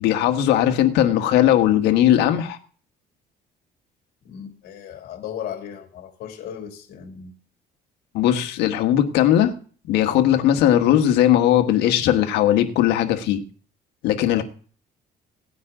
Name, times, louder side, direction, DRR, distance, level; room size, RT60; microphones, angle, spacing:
voice 1, 0.0-2.6 8.1-9.5 9.9-13.4 14.0-14.4, left 11 dB, 90° left, 1.5 m, -18 dB
voice 2, 4.2-7.3 14.3-14.4, left 9 dB, 65° left, 2.8 m, -36 dB
17.5 x 9.6 x 3.8 m
cardioid pair, 110°, 17 cm